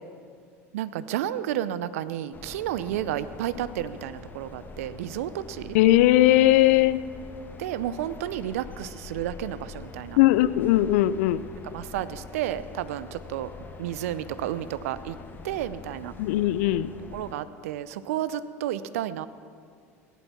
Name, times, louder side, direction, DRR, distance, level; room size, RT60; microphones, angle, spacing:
voice 1, 0.7-5.8 7.6-10.2 11.7-13.5 13.8-15.2 15.4-16.1 17.1-19.3, right 11 dB, 70° right, 15 dB, 0.6 m, -31 dB
sound 1, 2.3-17.3, left 4 dB, 25° left, 1.6 m, -44 dB
voice 2, 5.7-7.0 10.2-11.5 16.2-16.9, left 15 dB, 65° left, 16 dB, 0.5 m, -19 dB
17.5 x 11.5 x 5.9 m, 2.2 s
hypercardioid pair, 80°, 8 cm